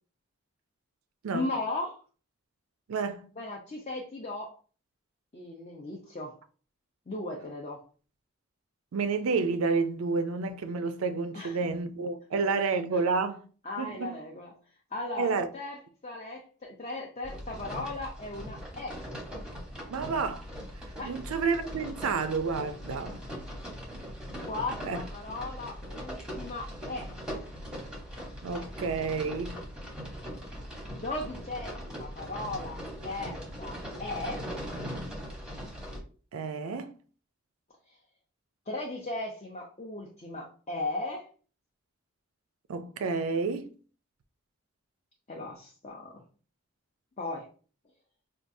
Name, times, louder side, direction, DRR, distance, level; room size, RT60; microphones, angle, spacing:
voice 1, 1.3-1.9 3.4-4.5 5.3-6.4 7.1-7.8 11.3-11.6 13.6-14.5 14.9-19.0 21.0-21.1 24.5-27.1 30.9-32.8 33.0-34.4 38.7-41.3 45.3-46.2 47.2-47.5, left 2 dB, 30° left, 0.5 m, -37 dB
voice 2, 2.9-3.3 8.9-13.4 13.8-14.2 15.2-15.5 19.9-20.5 21.1-23.2 24.9-25.0 28.4-29.6 36.3-37.0 42.7-43.7, right 4 dB, 80° right, 0.4 m, -30 dB
sound 1, 17.2-36.0, equal, 5° right, 0.8 m, -40 dB
4.5 x 2.3 x 2.6 m
head